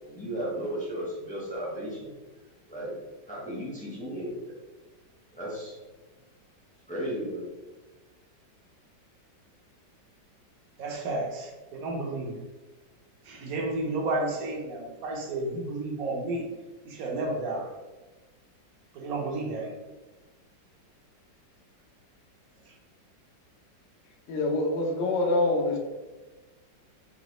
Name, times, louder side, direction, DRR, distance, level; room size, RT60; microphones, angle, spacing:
voice 1, 0.0-2.1 2.7-2.9 3.3-4.6 5.3-5.8 6.9-7.4, right 1 dB, 10° left, -6 dB, 0.5 m, -34 dB
voice 2, 10.8-12.3 13.3-16.5 16.8-17.7 18.9-19.7, right 2 dB, 60° right, 0 dB, 1.1 m, -32 dB
voice 3, 24.3-25.8, left 2 dB, 65° left, 1 dB, 0.7 m, -25 dB
4.0 x 2.9 x 3.0 m, 1.2 s
omnidirectional pair, 2.0 m